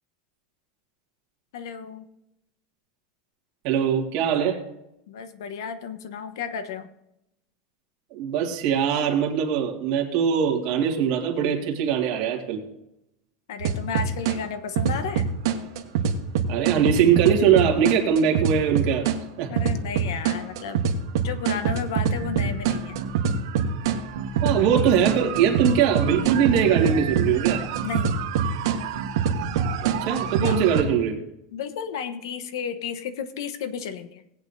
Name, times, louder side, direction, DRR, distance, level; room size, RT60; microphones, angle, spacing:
voice 1, 1.5-2.1 5.1-6.9 13.5-15.3 19.5-20.8 21.2-23.0 27.8-28.2 30.4-30.6 31.5-34.2, left 7 dB, 80° left, 11 dB, 1.1 m, -33 dB
voice 2, 3.6-4.6 8.1-12.6 16.5-19.1 19.4-19.5 24.4-27.6 29.8-31.2, right 8 dB, 45° right, 1 dB, 2.0 m, -22 dB
sound 1, 13.6-14.4 14.8-19.2 19.6-30.8, right 6 dB, 70° right, 1.4 m, -25 dB
18.5 x 8.8 x 2.7 m, 0.85 s
supercardioid pair, 165°, 2 cm